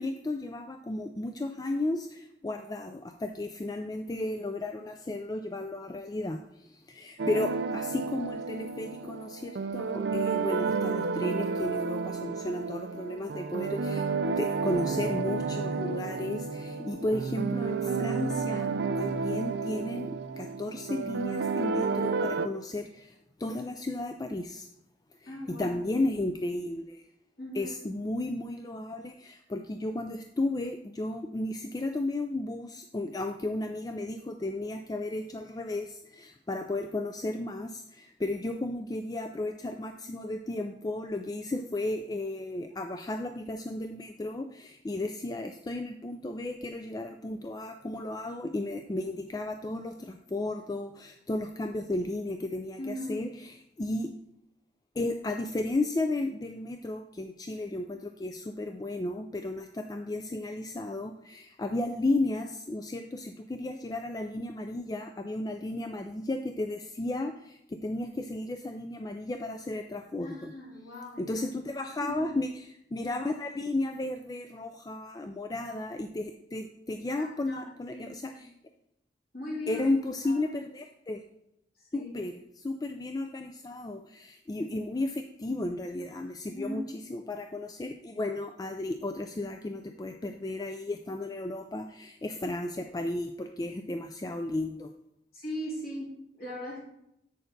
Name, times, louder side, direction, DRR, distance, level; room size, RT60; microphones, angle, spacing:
voice 1, 0.0-14.1 14.4-24.7 25.2-27.0 27.5-54.1 55.0-70.5 71.2-78.5 79.7-81.2 81.9-86.8 87.1-94.9, left 2 dB, 20° left, 6 dB, 0.3 m, -34 dB
sound 1, 7.2-22.5, right 4 dB, 65° right, 0.4 m, -31 dB
voice 2, 16.5-17.0 25.3-25.8 27.4-27.8 52.8-53.2 70.2-71.5 72.0-72.3 77.2-78.4 79.3-79.8 80.2-80.4 81.8-82.1 86.5-86.9 95.3-96.8, left 1 dB, 55° left, -5 dB, 3.5 m, -39 dB
7.9 x 6.6 x 3.9 m, 0.80 s
head